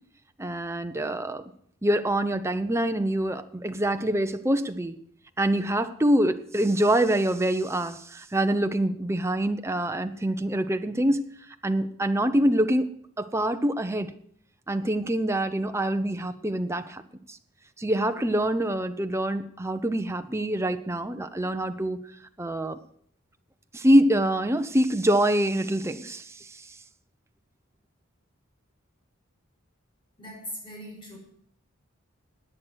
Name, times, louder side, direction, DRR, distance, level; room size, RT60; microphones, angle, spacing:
voice 1, 0.4-1.4 1.8-5.0 5.4-11.2 11.6-12.9 13.2-14.1 14.7-17.0 17.8-22.0 22.4-22.8 23.7-26.5, right 1 dB, 15° right, 8 dB, 0.8 m, -25 dB
voice 2, 30.2-31.2, equal, 25° left, 0 dB, 6.4 m, -40 dB
16.5 x 9.7 x 6.3 m, 0.66 s
head